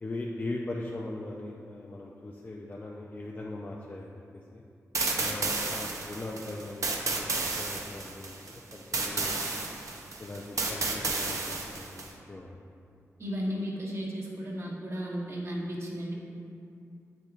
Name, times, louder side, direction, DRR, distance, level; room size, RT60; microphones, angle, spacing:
voice 1, 0.0-4.2 4.5-4.6 5.2-7.3 7.6-8.3 8.7-9.4 10.2-12.6, left 2 dB, 30° left, -2 dB, 0.5 m, -39 dB
sound 1, 4.9-12.1, right 3 dB, 70° right, 0.8 m, -32 dB
voice 2, 13.2-16.1, equal, 50° right, -4 dB, 1.3 m, -34 dB
8.3 x 6.5 x 2.5 m, 2.5 s
wide cardioid pair, 85°, 6 cm